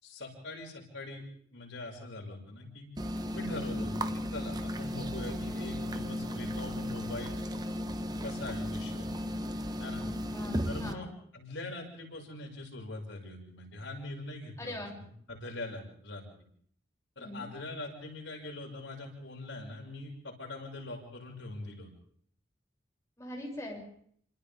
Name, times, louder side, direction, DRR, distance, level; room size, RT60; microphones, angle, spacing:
voice 1, 0.0-1.2 1.5-2.9 3.3-7.4 8.2-9.1 9.8-10.0 10.6-11.1 11.3-16.2 17.2-21.9, left 2 dB, 90° left, 0 dB, 6.7 m, -42 dB
sound 1, 3.0-10.9, equal, 20° right, 1.0 m, -35 dB
voice 2, 10.0-11.1 14.6-14.9 17.2-17.5 23.2-23.8, left 1 dB, 15° left, -2 dB, 7.4 m, -42 dB
28.5 x 26.5 x 3.7 m, 0.62 s
head